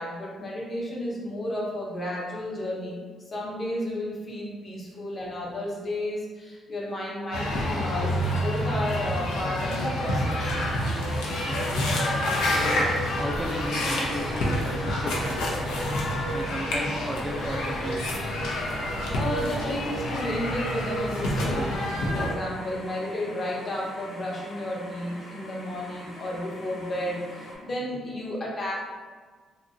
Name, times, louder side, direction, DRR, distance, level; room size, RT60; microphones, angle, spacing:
voice 1, 0.0-3.0 3.3-10.6 13.3-13.4 18.9-28.7, left 1 dB, 40° left, -4 dB, 0.9 m, -32 dB
sound 1, 7.3-22.3, left 1 dB, 90° left, 0.6 m, -28 dB
sound 2, 10.0-27.5, equal, 70° left, 0.9 m, -44 dB
voice 2, 11.4-11.9 12.4-15.5 16.3-18.2, equal, 10° right, -1 dB, 0.3 m, -35 dB
2.9 x 2.7 x 2.5 m, 1.5 s
cardioid pair, 90°, 0 cm